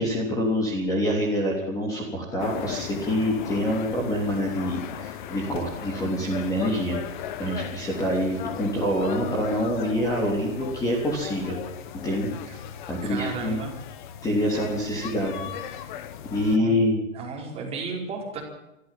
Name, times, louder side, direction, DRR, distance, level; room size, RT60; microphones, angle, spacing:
voice 1, 0.0-7.0 7.4-11.6 12.0-12.6 12.9-13.6 14.2-15.8 16.3-17.0, equal, 10° left, -1 dB, 3.5 m, -26 dB
sound 1, 2.4-16.6, left 9 dB, 40° left, 1.4 m, -37 dB
voice 2, 13.0-13.7 16.5-16.8 17.1-18.4, right 4 dB, 15° right, -1 dB, 5.0 m, -33 dB
25.5 x 14.0 x 7.6 m, 0.91 s
hypercardioid pair, 170°, 39 cm